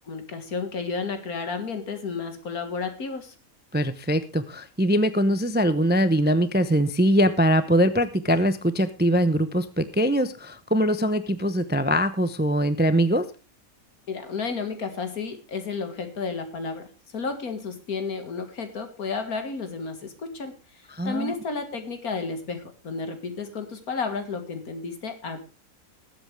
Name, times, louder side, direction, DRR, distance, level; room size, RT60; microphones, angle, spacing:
voice 1, 0.0-3.3 14.1-16.9 17.1-20.6 21.0-25.4, left 4 dB, 85° left, 7 dB, 2.3 m, -32 dB
voice 2, 3.7-13.3 20.9-21.3, equal, 15° right, 12 dB, 0.4 m, -22 dB
19.5 x 8.0 x 3.3 m, 0.32 s
omnidirectional pair, 1.5 m